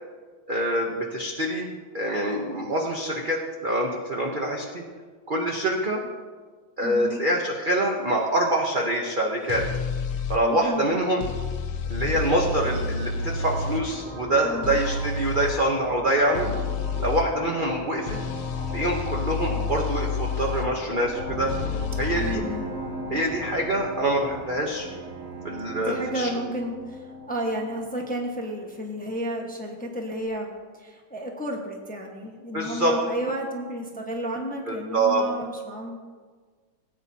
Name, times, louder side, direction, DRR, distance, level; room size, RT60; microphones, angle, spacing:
voice 1, 0.5-1.7 1.9-4.8 5.3-6.0 6.8-9.6 10.3-11.2 11.9-16.6 17.0-18.2 18.7-21.5 22.0-22.4 23.1-24.9 25.4-26.3 32.5-33.0 34.7-35.2, right 1 dB, 50° right, -1 dB, 0.6 m, -25 dB
voice 2, 6.8-7.2 10.4-10.8 14.4-14.7 22.1-22.7 25.8-36.0, equal, 5° left, 0 dB, 0.7 m, -32 dB
sound 1, 9.5-10.4 11.2-13.8 14.6-15.5 16.3-17.3 18.1-20.7 21.5-22.3, left 4 dB, 85° left, 1.6 m, -29 dB
sound 2, 11.7-29.3, left 3 dB, 50° left, 1.4 m, -38 dB
Bowed string instrument, 22.2-27.1, right 10 dB, 90° right, 1.6 m, -40 dB
18.0 x 8.9 x 2.8 m, 1.5 s
omnidirectional pair, 2.2 m